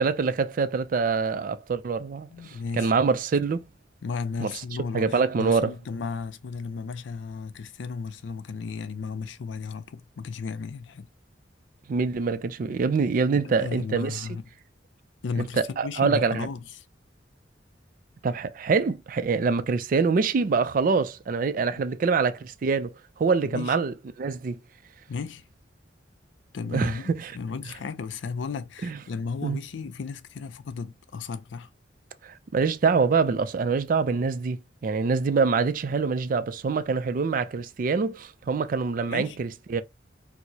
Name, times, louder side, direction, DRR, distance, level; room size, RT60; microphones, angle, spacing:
voice 1, 0.0-3.6 4.4-4.5 4.9-5.7 11.9-14.3 15.4-16.5 18.2-24.6 26.7-27.3 28.8-29.0 29.4-29.6 32.2-39.8, right 5 dB, 50° right, 0.3 m, -25 dB
voice 2, 2.3-2.9 4.0-11.1 13.3-14.4 15.2-16.6 23.4-23.8 25.1-25.5 26.5-31.7 39.1-39.4, left 5 dB, 85° left, 0.4 m, -34 dB
4.5 x 2.0 x 2.7 m
head